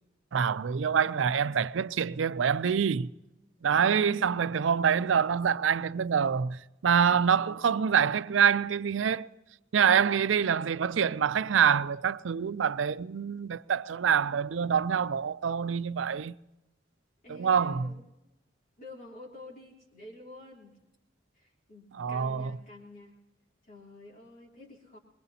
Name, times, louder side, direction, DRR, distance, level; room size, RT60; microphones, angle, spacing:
voice 1, 0.3-3.1 3.6-9.3 9.7-16.3 17.3-17.9 21.9-22.6, right 7 dB, 85° right, 0.5 m, -26 dB
voice 2, 3.7-4.5 7.1-8.0 9.7-10.3 17.2-18.0 18.8-20.8 21.3-23.2 23.6-25.0, left 2 dB, 45° left, 3.4 m, -49 dB
23.5 x 22.0 x 2.8 m
head